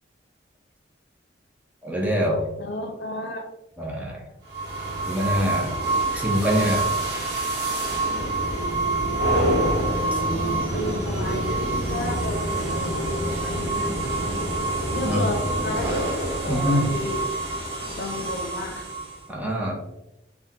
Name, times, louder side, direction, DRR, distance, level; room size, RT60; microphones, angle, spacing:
voice 1, 1.8-2.4 3.8-4.2 5.1-5.8 6.1-6.9 10.1-10.2 15.0-15.3 16.5-16.9 19.3-19.8, equal, 10° right, -2 dB, 0.5 m, -24 dB
voice 2, 2.6-3.5 10.3-12.4 12.7-13.9 14.9-16.0 16.4-17.2 18.0-18.9, left 2 dB, 70° left, 4 dB, 0.5 m, -32 dB
sound 1, 4.5-19.2, right 2 dB, 60° right, 0.9 m, -26 dB
3.5 x 2.2 x 2.7 m, 0.92 s
head